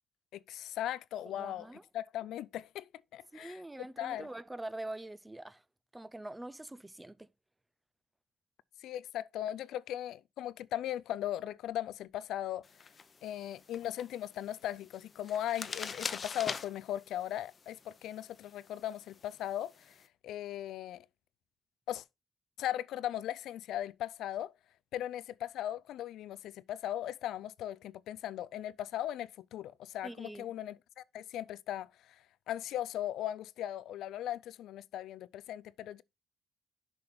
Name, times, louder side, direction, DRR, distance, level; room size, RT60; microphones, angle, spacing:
voice 1, 0.3-1.7 1.9-4.3 8.8-12.6 13.2-20.0 20.2-21.1 21.9-22.0 22.6-24.5 24.9-32.2 32.5-36.0, left 12 dB, 80° left, 0.3 m, -38 dB
voice 2, 1.2-1.8 3.3-5.6 5.9-7.3 30.0-30.5, right 1 dB, 10° right, 0.5 m, -44 dB
sound 1, 12.6-20.1, left 5 dB, 40° left, 0.8 m, -45 dB
6.8 x 5.2 x 4.2 m
cardioid pair, 90°, 0 cm